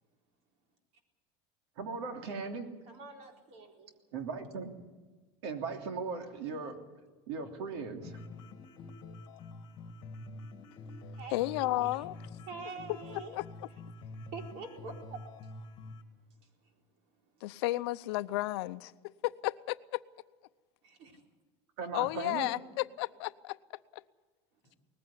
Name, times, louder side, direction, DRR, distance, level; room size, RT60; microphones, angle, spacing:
voice 1, 1.8-2.7 4.1-4.7 5.4-6.8 7.3-8.2 21.8-22.5, right 5 dB, 70° right, 5 dB, 3.1 m, -38 dB
voice 2, 2.9-3.9 11.1-12.0 12.5-13.4 14.2-15.2 16.4-16.5 20.8-21.2, right 5 dB, 45° right, 3 dB, 4.2 m, -46 dB
sound 1, 8.0-16.0, left 2 dB, 30° left, 2.1 m, -47 dB
voice 3, 11.3-12.2 13.1-13.4 17.4-20.0 21.9-23.6 23.9-24.0, left 18 dB, 70° left, 14 dB, 0.7 m, -33 dB
20.0 x 15.5 x 9.9 m, 1.3 s
cardioid pair, 170°, 14 cm